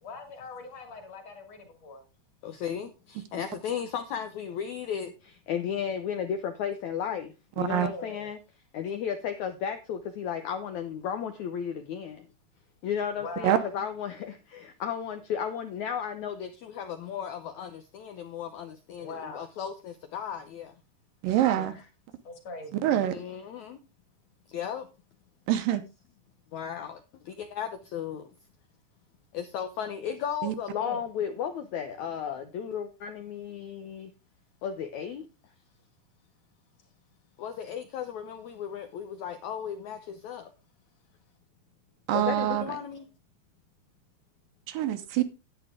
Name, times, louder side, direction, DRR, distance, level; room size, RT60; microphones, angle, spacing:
voice 1, 0.0-2.0 7.7-8.3 13.1-13.7 19.0-19.4 22.2-22.9 30.8-31.0, left 3 dB, 45° left, 3.2 m, -41 dB
voice 2, 2.4-8.4 8.7-12.3 12.8-20.7 21.6-21.8 23.1-23.8 24.5-24.9 26.5-28.3 29.3-34.1 34.6-35.3 37.4-40.5 42.1-43.1, left 8 dB, 75° left, 1.8 m, -34 dB
voice 3, 7.6-7.9 13.4-13.6 21.2-21.8 22.7-23.2 25.5-25.8 30.4-30.5 42.1-42.7 44.7-45.2, right 12 dB, 75° right, 2.4 m, -25 dB
11.0 x 9.0 x 3.6 m
omnidirectional pair, 4.4 m